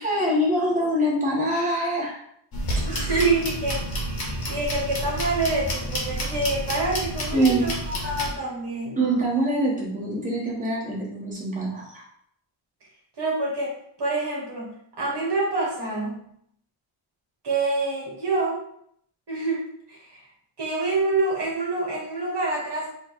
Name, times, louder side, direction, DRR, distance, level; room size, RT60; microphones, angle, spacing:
voice 1, 0.0-2.2 2.8-3.1 7.3-7.6 9.0-12.0, right 1 dB, 15° right, -6 dB, 1.4 m, -24 dB
sound 1, 2.5-8.3, equal, 45° left, 1.1 m, -29 dB
voice 2, 2.9-3.8 4.5-9.0 13.2-16.2 17.4-18.6 19.3-20.2 20.6-22.9, right 3 dB, 55° right, -3 dB, 1.3 m, -26 dB
4.3 x 2.4 x 4.5 m, 0.70 s
wide cardioid pair, 145°, 49 cm